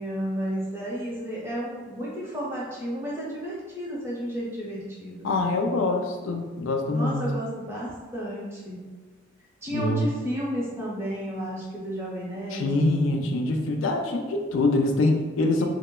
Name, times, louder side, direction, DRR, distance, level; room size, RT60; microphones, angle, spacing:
voice 1, 0.0-5.3 6.9-8.8 9.6-12.9 15.6-15.7, equal, 15° right, -6 dB, 0.7 m, -32 dB
voice 2, 5.2-7.2 9.7-10.1 12.5-15.7, left 2 dB, 80° left, 3 dB, 0.3 m, -24 dB
2.9 x 2.1 x 2.2 m, 1.4 s
head